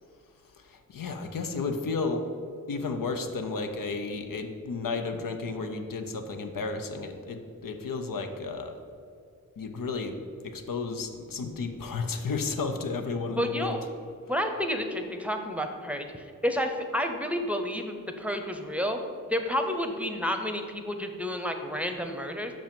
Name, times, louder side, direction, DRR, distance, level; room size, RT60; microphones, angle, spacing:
voice 1, 0.7-2.3 2.7-8.7 9.6-10.2 10.4-13.8, left 4 dB, 80° left, 5 dB, 0.7 m, -32 dB
voice 2, 13.3-13.8 14.3-19.0 19.3-22.5, equal, 5° right, 5 dB, 0.7 m, -30 dB
5.8 x 5.1 x 5.3 m, 2.4 s
cardioid pair, 50°, 33 cm